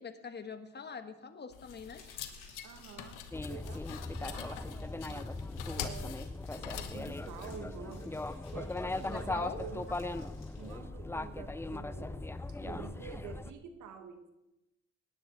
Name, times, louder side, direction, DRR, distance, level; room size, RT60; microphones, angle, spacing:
voice 1, 0.0-2.0 9.1-9.6, left 6 dB, 35° left, 8 dB, 1.3 m, -43 dB
sound 1, 1.5-7.5, left 9 dB, 90° left, 1.1 m, -45 dB
sound 2, 1.7-10.8, left 4 dB, 55° left, 4.0 m, -63 dB
voice 2, 2.6-3.2 3.5-5.3 5.8-6.1 6.5-8.1 8.5-9.9 10.6-12.3 12.6-14.3, right 7 dB, 80° right, 7 dB, 1.6 m, -48 dB
sound 3, 3.3-13.5, left 2 dB, 10° left, 0.4 m, -39 dB
16.5 x 9.8 x 4.0 m, 0.95 s
cardioid pair, 90°, 30 cm